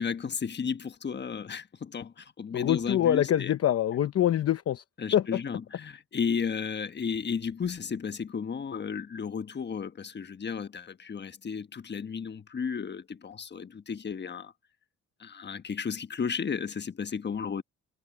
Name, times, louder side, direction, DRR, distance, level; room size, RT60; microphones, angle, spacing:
voice 1, 0.0-3.5 5.0-14.5 15.2-17.6, left 6 dB, 35° left, 1.3 m, -33 dB
voice 2, 2.5-4.8 5.1-5.4, left 11 dB, 55° left, 0.8 m, -25 dB
cardioid pair, 90°, 30 cm